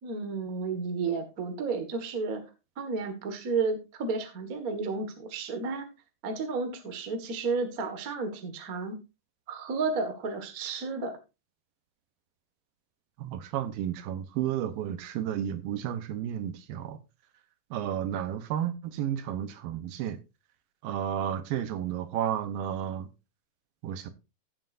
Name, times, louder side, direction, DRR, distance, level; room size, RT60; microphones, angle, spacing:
voice 1, 0.0-2.4 2.8-5.9 6.2-9.0 9.5-11.2, right 4 dB, 60° right, 0.9 m, -32 dB
voice 2, 13.2-17.0 17.7-20.2 20.8-23.1 23.8-24.1, right 10 dB, 75° right, 2.6 m, -32 dB
15.0 x 7.6 x 2.6 m
omnidirectional pair, 4.4 m